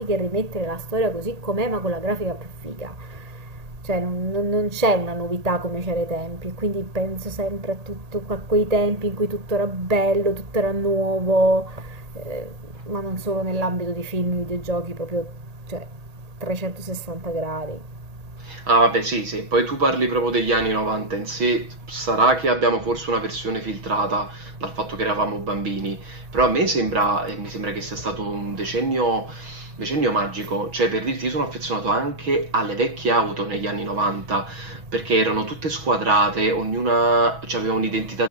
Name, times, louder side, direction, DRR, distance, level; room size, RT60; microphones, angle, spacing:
voice 1, 0.0-2.4 2.6-2.9 3.9-7.8 8.3-11.7 12.3-12.4 12.9-15.2 16.4-17.8, right 1 dB, 10° right, 3.1 m, -24 dB
voice 2, 18.4-38.3, right 2 dB, 25° right, 4.5 m, -23 dB
omnidirectional pair, 5.9 m